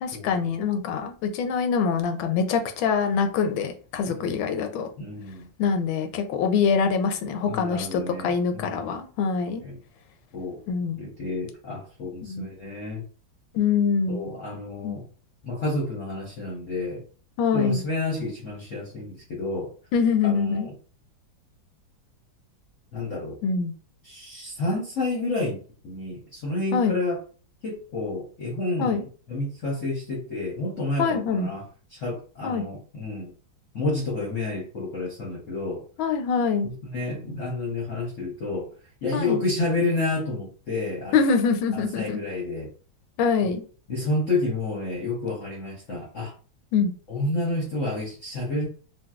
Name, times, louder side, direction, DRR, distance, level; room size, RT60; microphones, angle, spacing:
voice 1, 0.0-4.9 5.6-9.6 10.7-11.0 12.2-12.4 13.5-14.2 14.8-14.9 17.4-17.8 19.9-20.7 23.4-23.7 26.7-27.0 28.8-29.0 31.0-31.5 32.4-32.6 36.0-36.7 39.1-39.4 41.1-42.2 43.2-43.6 46.7-46.9, left 6 dB, 85° left, 6 dB, 1.4 m, -24 dB
voice 2, 5.0-5.5 7.4-9.0 9.6-9.8 10.3-10.6 10.9-13.0 14.1-15.1 15.4-17.0 17.5-19.7 20.2-20.7 22.9-23.4 24.0-25.6 25.8-27.2 27.6-29.0 29.3-33.3 33.7-35.9 36.6-38.7 39.0-41.2 41.7-42.7 43.4-43.5 43.9-46.3 47.1-48.7, left 2 dB, 55° left, -4 dB, 0.9 m, -30 dB
3.9 x 2.2 x 2.3 m, 0.39 s
omnidirectional pair, 2.1 m